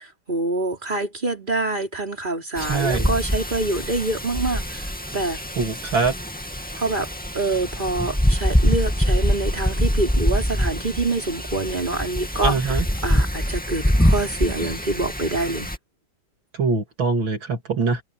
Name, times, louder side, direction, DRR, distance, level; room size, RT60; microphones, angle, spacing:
voice 1, 0.0-5.4 6.7-12.8 13.0-15.7, right 2 dB, 20° right, 4.9 m, -26 dB
Wind, 2.6-15.8, equal, 5° left, 2.2 m, -24 dB
voice 2, 2.6-3.1 5.6-6.1 12.4-12.8 16.6-18.0, right 4 dB, 60° right, 2.9 m, -23 dB
omnidirectional pair, 2.4 m